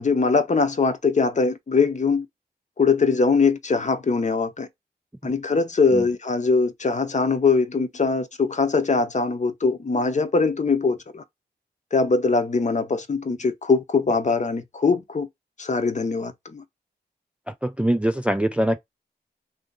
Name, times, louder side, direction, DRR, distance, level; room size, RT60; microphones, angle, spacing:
voice 1, 0.0-2.3 2.8-4.7 5.2-11.2 11.9-15.3 15.6-16.6, left 4 dB, 45° left, 0.7 m, -22 dB
voice 2, 17.6-18.8, right 1 dB, 5° right, 0.3 m, -22 dB
2.7 x 2.7 x 3.7 m
cardioid pair, 75°, 18 cm